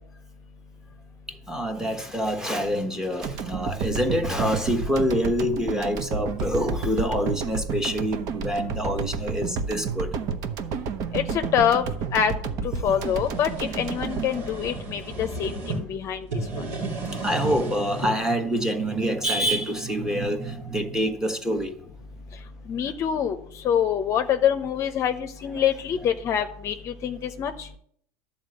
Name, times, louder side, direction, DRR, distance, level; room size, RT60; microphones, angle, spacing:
voice 1, 1.5-10.1 17.1-21.7, equal, 5° right, 1.3 m, -26 dB
sound 1, 3.2-15.4, right 5 dB, 50° right, 0.9 m, -31 dB
voice 2, 11.5-11.8 12.1-12.3 12.8-16.2 16.6-16.7 22.7-23.4 23.6-27.7, left 9 dB, 40° left, 0.7 m, -25 dB
sound 2, 12.7-15.8 16.2-18.1, right 3 dB, 80° right, 2.6 m, -34 dB
11.0 x 4.2 x 7.8 m
supercardioid pair, 115°, 8 cm